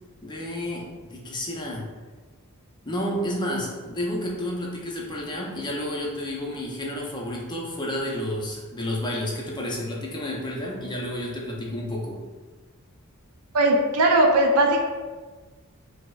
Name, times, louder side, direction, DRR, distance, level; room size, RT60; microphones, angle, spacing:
voice 1, 0.2-1.8 2.8-12.2, left 1 dB, 20° left, -2 dB, 0.5 m, -30 dB
voice 2, 13.5-14.8, right 1 dB, 80° right, 1 dB, 0.5 m, -19 dB
4.8 x 2.0 x 2.3 m, 1.4 s
head